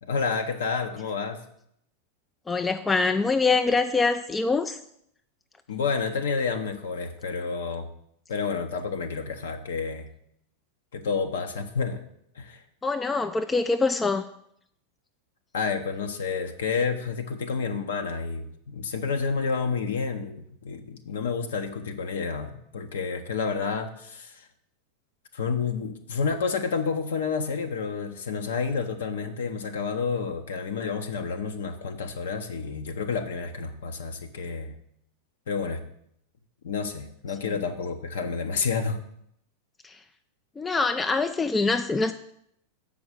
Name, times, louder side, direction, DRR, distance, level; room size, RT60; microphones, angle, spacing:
voice 1, 0.0-1.4 5.7-7.9 8.3-10.1 10.9-12.0 12.3-12.6 15.5-24.5 25.3-34.7 35.5-35.8 36.6-39.0, left 5 dB, 60° left, 0.7 m, -29 dB
voice 2, 2.5-4.8 12.8-14.3 39.8-40.0 40.6-42.1, left 4 dB, 15° left, 0.3 m, -24 dB
6.9 x 5.1 x 6.6 m
figure-of-eight pair, 90°, 0 cm